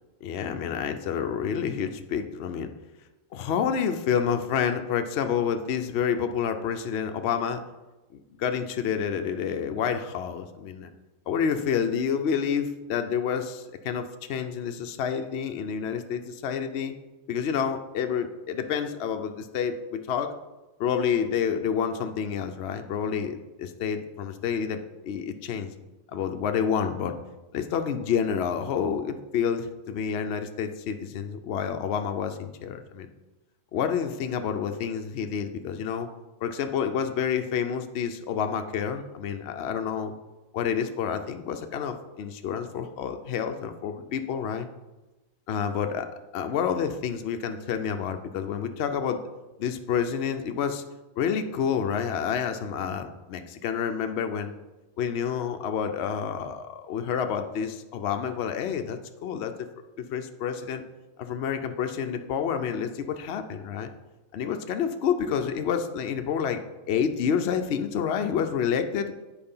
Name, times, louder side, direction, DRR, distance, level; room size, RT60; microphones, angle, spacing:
voice 1, 0.2-2.7 3.3-7.6 8.4-10.9 11.3-16.9 17.3-20.3 20.8-25.7 26.1-27.2 27.5-33.1 33.7-36.1 36.4-40.1 40.5-44.7 45.5-46.1 46.3-49.2 49.6-50.8 51.2-54.5 55.0-59.5 60.0-60.8 61.2-63.9 64.3-66.6 66.9-69.1, left 7 dB, 60° left, 6 dB, 0.8 m, -29 dB
8.9 x 4.7 x 5.5 m, 1.1 s
omnidirectional pair, 1.3 m